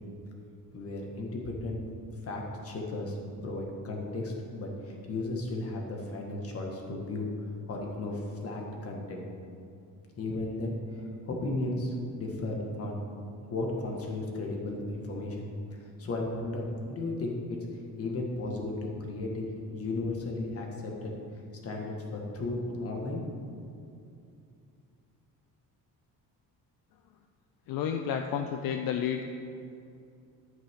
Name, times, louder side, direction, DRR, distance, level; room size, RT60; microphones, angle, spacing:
voice 1, 0.7-1.8 2.2-3.2 3.4-7.3 7.7-9.2 10.2-13.0 13.5-17.6 18.0-21.1 21.6-23.2, left 2 dB, 40° left, 0 dB, 1.7 m, -35 dB
voice 2, 27.7-29.2, left 8 dB, 70° left, 5 dB, 0.6 m, -31 dB
11.0 x 9.0 x 3.7 m, 2.5 s
cardioid pair, 145°, 36 cm